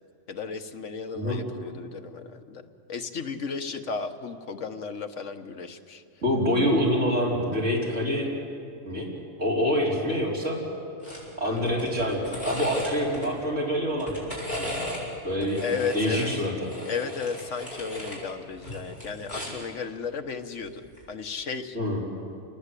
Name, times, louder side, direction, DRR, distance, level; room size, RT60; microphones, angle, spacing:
voice 1, 0.3-6.0 11.4-11.7 15.6-16.3 16.9-21.8, left 5 dB, 80° left, 7 dB, 1.5 m, -34 dB
voice 2, 6.2-8.3 8.8-9.1 9.4-10.6 11.4-14.3 14.6-14.7 15.2-15.6 15.9-16.5 21.7-22.0, equal, 80° right, -4 dB, 5.3 m, -26 dB
sound 1, 11.0-11.2 11.6-13.3 13.9-15.0 15.4-18.2 18.5-19.7 20.8-21.0, left 1 dB, 35° left, 6.6 m, -36 dB
29.5 x 19.5 x 8.3 m, 2.6 s
omnidirectional pair, 1.3 m